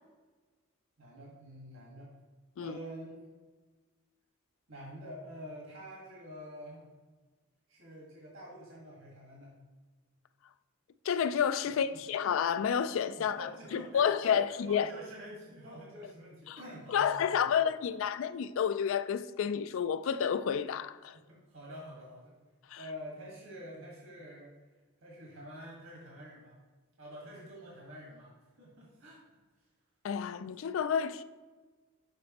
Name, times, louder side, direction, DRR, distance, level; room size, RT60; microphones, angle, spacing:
voice 1, 1.0-2.1 2.6-3.2 4.7-6.9 7.7-9.5 13.1-17.6 21.3-22.3 22.8-24.5 25.0-26.6 27.0-29.2, equal, 70° right, 1.6 m, -47 dB
voice 2, 11.1-14.9 16.5-16.6 16.9-21.2 22.7-22.8 30.0-31.2, left 7 dB, 65° left, 0.3 m, -30 dB
6.7 x 5.1 x 2.9 m
head